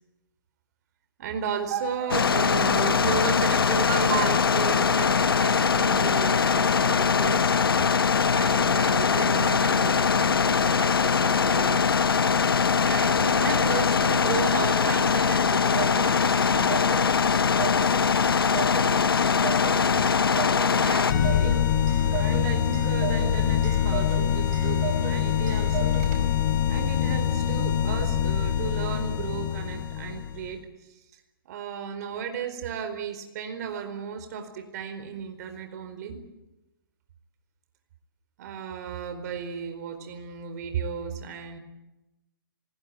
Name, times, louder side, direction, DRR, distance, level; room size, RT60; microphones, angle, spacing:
voice 1, 1.2-7.6 8.3-11.9 12.8-17.2 20.8-26.0 26.7-30.6 31.4-36.2 38.4-41.6, right 7 dB, 45° right, 8 dB, 4.5 m, -34 dB
sound 1, 2.1-21.1, left 6 dB, 85° left, 0.9 m, -22 dB
Clock, 15.0-26.5, right 6 dB, 30° right, 4.8 m, -36 dB
sound 2, 21.1-30.5, left 9 dB, 50° left, 5.8 m, -25 dB
27.5 x 20.0 x 8.8 m, 0.99 s
hypercardioid pair, 140°, 12 cm